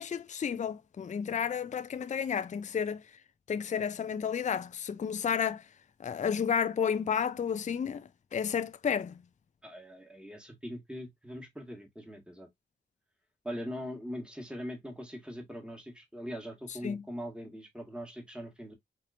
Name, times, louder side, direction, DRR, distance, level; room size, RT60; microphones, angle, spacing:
voice 1, 0.0-3.0 3.5-5.6 6.0-9.2 16.8-17.0, left 7 dB, 40° left, 0.4 m, -31 dB
voice 2, 9.6-12.5 13.4-18.7, equal, 5° right, 1.5 m, -41 dB
4.2 x 3.0 x 2.5 m
cardioid pair, 50°, 20 cm